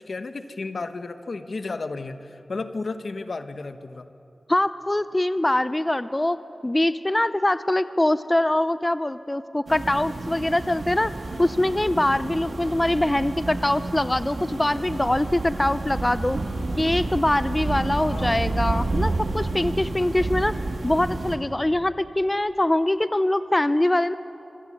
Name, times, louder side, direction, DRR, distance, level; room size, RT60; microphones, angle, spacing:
voice 1, 0.0-4.1 18.0-18.7, left 3 dB, 70° left, 9 dB, 1.2 m, -33 dB
voice 2, 4.5-6.4 6.6-11.1 11.4-16.4 16.8-20.5 20.8-24.1, left 1 dB, 20° left, 13 dB, 0.5 m, -23 dB
sound 1, 9.7-21.4, right 2 dB, 75° right, 2.1 m, -30 dB
25.5 x 15.0 x 9.7 m, 2.9 s
wide cardioid pair, 75°, 0 cm